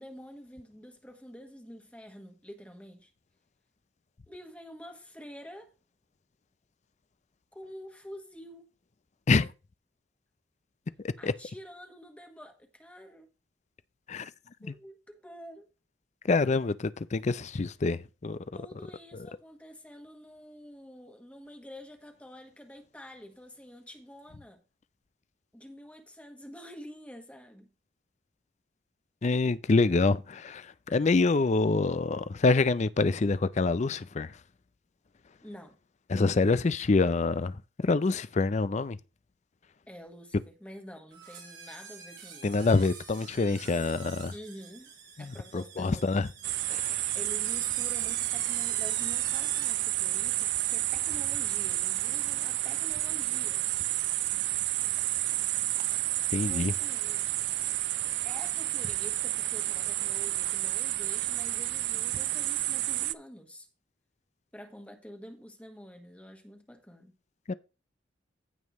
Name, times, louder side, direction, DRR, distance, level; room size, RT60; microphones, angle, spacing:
voice 1, 0.0-3.1 4.3-5.7 7.5-8.7 11.2-13.3 14.6-15.7 18.5-24.6 25.5-27.7 35.4-35.8 39.9-42.7 44.3-44.9 45.2-46.1 47.1-53.6 56.4-57.3 58.2-63.7 64.5-67.1, equal, 5° left, 1.4 m, -48 dB
voice 2, 11.0-11.3 14.1-14.3 14.6-14.7 16.2-18.4 19.1-19.3 29.2-34.4 36.1-39.0 42.4-44.3 45.2-46.3 46.7-47.0 56.3-56.7 67.5-67.6, left 3 dB, 40° left, 0.5 m, -26 dB
sound 1, 41.1-49.9, right 6 dB, 80° right, 4.5 m, -47 dB
sound 2, 46.4-63.1, right 16 dB, 65° right, 0.4 m, -30 dB
16.0 x 5.3 x 3.1 m
head